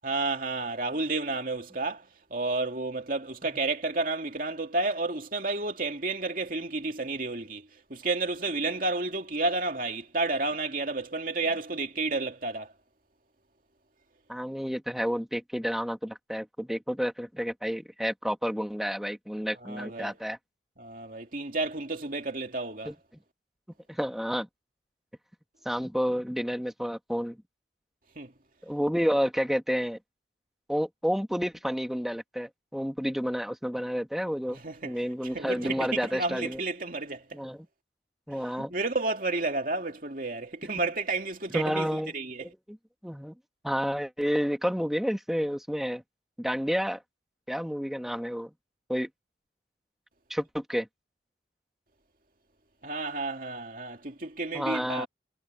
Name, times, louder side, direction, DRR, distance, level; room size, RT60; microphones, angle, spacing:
voice 1, 0.0-12.7 19.5-20.2 20.8-22.9 28.2-28.3 34.5-37.4 38.5-42.5 52.8-55.1, right 3 dB, 45° right, 2.7 m, -31 dB
voice 2, 14.3-20.4 22.9-23.0 23.9-24.5 25.6-27.4 28.6-30.0 30.7-36.6 37.3-37.7 38.3-38.7 40.8-40.9 41.5-42.1 42.4-42.8 43.0-43.3 43.6-46.0 46.4-47.0 47.5-48.5 48.9-49.1 50.3-50.9 54.5-55.1, equal, ahead, 2.3 m, -30 dB
head